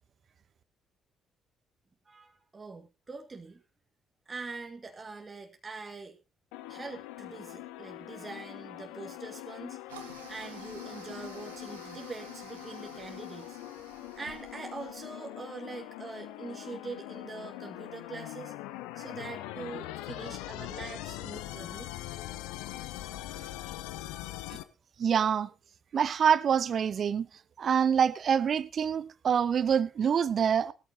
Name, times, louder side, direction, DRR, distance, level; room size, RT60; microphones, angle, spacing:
voice 1, 2.0-3.6 4.2-6.2 6.7-9.8 10.3-13.6 14.2-18.5 18.9-21.9, right 3 dB, 25° right, 1.8 m, -43 dB
sound 1, 6.5-24.6, left 15 dB, 65° left, 0.8 m, -42 dB
Toilet flush, 9.9-15.1, right 8 dB, 75° right, 1.5 m, -51 dB
voice 2, 25.0-25.5 25.9-27.3 27.6-30.7, right 7 dB, 45° right, 0.8 m, -26 dB
18.5 x 13.5 x 2.8 m
figure-of-eight pair, 45°, 0 cm